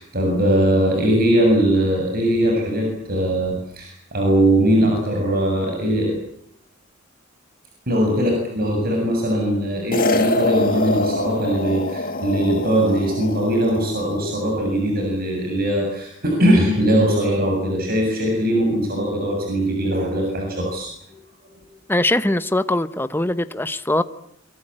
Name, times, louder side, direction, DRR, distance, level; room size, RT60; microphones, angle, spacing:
voice 1, 0.0-6.1 7.9-20.9, right 1 dB, 50° right, 1 dB, 7.4 m, -20 dB
sound 1, 9.9-14.4, left 2 dB, 45° left, 2.0 m, -25 dB
voice 2, 21.9-24.0, left 1 dB, 10° left, 12 dB, 1.0 m, -21 dB
25.5 x 23.5 x 8.8 m, 0.68 s
head